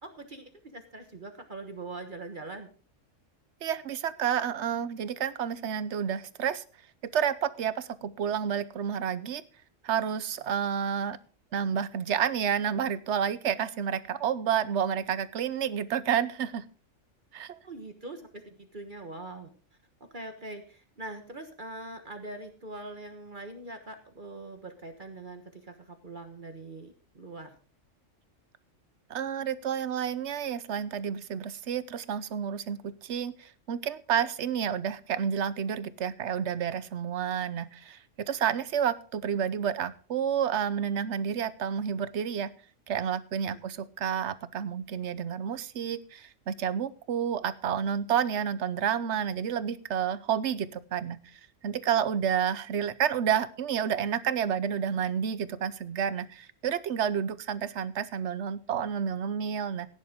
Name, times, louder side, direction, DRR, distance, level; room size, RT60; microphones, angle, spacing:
voice 1, 0.0-2.7 17.6-19.5 20.1-27.6 43.5-43.6, right 2 dB, 40° right, 6 dB, 1.4 m, -42 dB
voice 2, 3.6-6.6 7.1-9.4 9.8-11.2 11.5-16.6 17.3-17.6 29.1-42.5 42.9-59.9, right 8 dB, 60° right, 15 dB, 1.0 m, -30 dB
16.0 x 10.5 x 3.6 m, 0.38 s
omnidirectional pair, 1.3 m